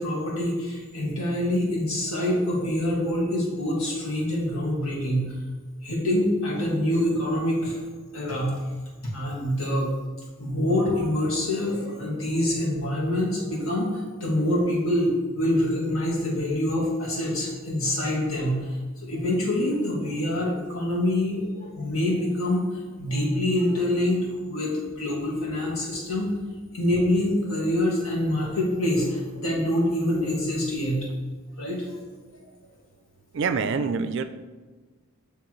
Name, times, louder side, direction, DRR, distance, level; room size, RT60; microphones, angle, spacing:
voice 1, 0.0-5.2 5.8-7.8 8.1-8.6 9.0-9.9 10.4-26.3 26.7-31.1 31.6-31.9, left 1 dB, 75° left, -4 dB, 1.9 m, -25 dB
voice 2, 33.3-34.2, right 5 dB, 55° right, 10 dB, 0.3 m, -27 dB
9.3 x 3.4 x 3.1 m, 1.3 s
head